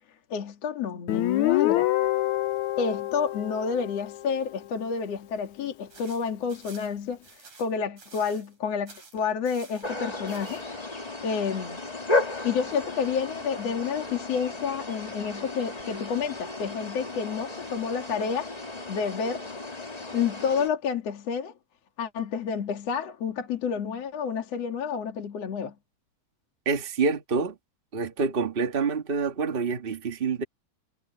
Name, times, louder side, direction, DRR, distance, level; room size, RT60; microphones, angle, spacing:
voice 1, 0.3-1.9 2.8-7.2 7.6-10.6 11.2-11.8 12.4-18.5 18.9-19.4 20.1-21.5 22.0-25.7, left 6 dB, 55° left, 2.9 m, -29 dB
Guitar, 1.1-4.5, left 15 dB, 75° left, 2.2 m, -26 dB
sound 1, 5.9-8.6 8.9-9.9 10.3-10.6, right 4 dB, 70° right, 8.2 m, -51 dB
sound 2, 9.8-20.7, left 2 dB, 15° left, 1.6 m, -34 dB
voice 2, 26.6-27.5 27.9-30.4, right 5 dB, 55° right, 0.6 m, -27 dB
omnidirectional pair, 3.5 m